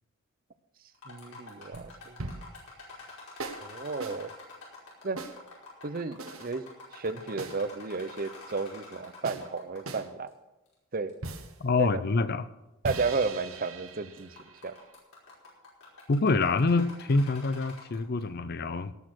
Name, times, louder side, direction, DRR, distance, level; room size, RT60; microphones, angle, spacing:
sound 1, 0.9-10.0 10.3-10.4 11.1-11.2 11.8-11.9 13.0-13.3 13.7-13.9 14.2-18.2, left 3 dB, 90° left, 5.1 m, -48 dB
voice 1, 1.1-2.2 3.6-4.3 5.0-5.2 5.8-10.3 10.9-11.1 11.8-12.0 12.8-14.3 14.6-14.8, right 4 dB, 40° right, 12 dB, 0.7 m, -33 dB
sound 2, 1.7-2.6 3.4-3.7 4.0-4.2 5.2-5.4 6.2-6.5 7.4-7.6 9.2-9.5 9.9-10.1 11.2-11.6 12.8-15.0, right 3 dB, 75° right, 1.3 m, -40 dB
voice 2, 11.6-12.5 16.1-18.9, left 3 dB, 45° left, 14 dB, 0.5 m, -26 dB
18.0 x 6.4 x 6.3 m, 1.0 s
head